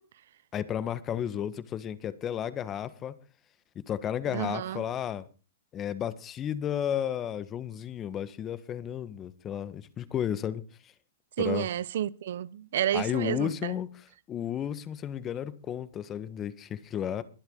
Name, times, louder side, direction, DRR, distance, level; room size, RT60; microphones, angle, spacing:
voice 1, 0.5-3.1 3.9-5.3 5.7-10.9 11.4-11.7 12.9-17.2, left 9 dB, 25° left, 1.5 m, -33 dB
voice 2, 4.3-4.8 11.4-13.7, right 11 dB, 70° right, 0.8 m, -30 dB
22.5 x 8.1 x 4.0 m
hypercardioid pair, 130°, 0 cm